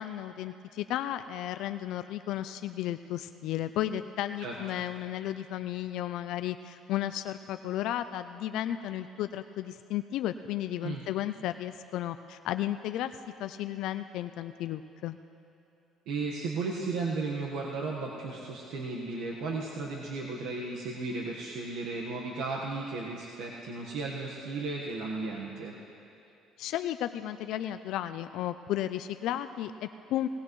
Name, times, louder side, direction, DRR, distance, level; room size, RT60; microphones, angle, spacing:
voice 1, 0.0-13.1 13.4-15.2 26.6-30.3, left 12 dB, 75° left, 10 dB, 0.4 m, -34 dB
voice 2, 16.1-25.7, right 3 dB, 85° right, -3 dB, 1.3 m, -35 dB
19.0 x 18.5 x 3.1 m, 2.7 s
cardioid pair, 125°, 0 cm